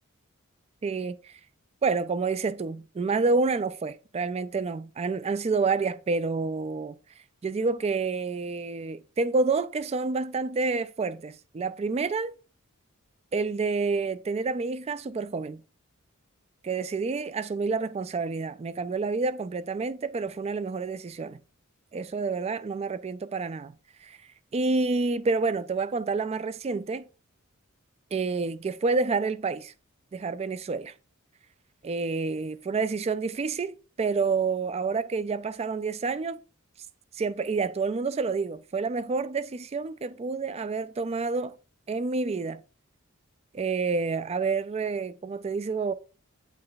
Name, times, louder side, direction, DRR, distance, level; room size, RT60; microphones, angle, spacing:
voice 1, 0.8-1.4 1.8-6.9 7.4-12.3 13.3-15.6 16.6-21.4 21.9-23.7 24.0-24.2 24.5-27.1 28.1-29.7 30.1-30.9 31.8-36.4 37.1-41.6 41.9-42.6 43.5-45.9, right 4 dB, 30° right, 0.3 m, -28 dB
8.5 x 3.3 x 3.9 m
head